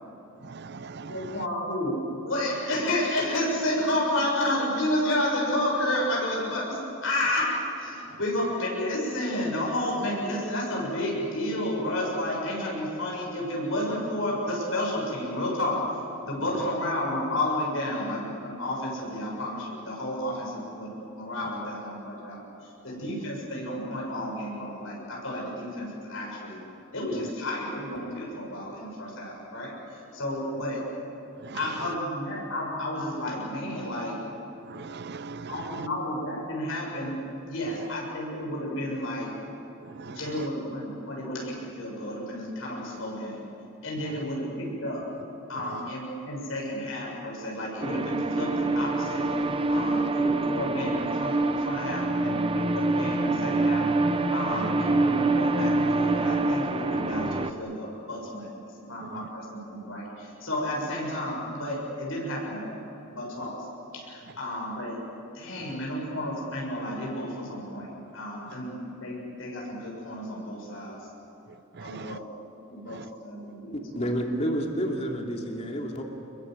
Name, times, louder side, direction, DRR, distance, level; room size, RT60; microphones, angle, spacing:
voice 1, 0.5-1.3 31.4-31.6 34.7-35.9 40.0-40.2 45.7-45.8 71.8-72.2 72.9-73.0, right 4 dB, 55° right, 16 dB, 0.6 m, -40 dB
voice 2, 1.1-15.8 16.3-22.5 22.8-26.6 26.9-29.7 30.1-30.8 31.5-34.2 35.5-37.2 37.5-39.3 40.1-43.4 43.8-45.0 45.5-49.3 49.7-53.9 54.3-58.5 58.8-62.8 63.1-63.6 63.9-65.0 65.4-68.7 69.0-71.0 71.8-72.2 72.7-73.7, left 1 dB, 75° left, -3 dB, 7.0 m, -31 dB
sound 1, 47.8-57.5, right 2 dB, 25° right, 0.9 m, -26 dB
voice 3, 73.9-76.0, equal, 30° left, 1 dB, 2.9 m, -29 dB
27.0 x 22.5 x 7.9 m, 2.8 s
head